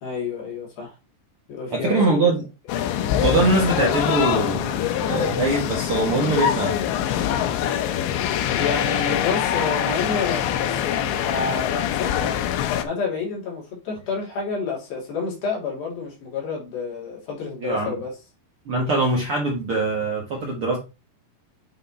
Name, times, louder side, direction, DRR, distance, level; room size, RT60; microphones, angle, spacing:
voice 1, 0.0-0.9 1.5-2.3 8.5-18.1, left 4 dB, 60° left, 4.5 m, -29 dB
voice 2, 1.7-2.4 3.2-4.7 5.0-6.7 17.6-18.0 18.6-20.8, right 3 dB, 85° right, 1.2 m, -22 dB
sound 1, 2.7-12.8, left 10 dB, 90° left, 3.2 m, -24 dB
8.8 x 4.0 x 4.3 m
omnidirectional pair, 5.1 m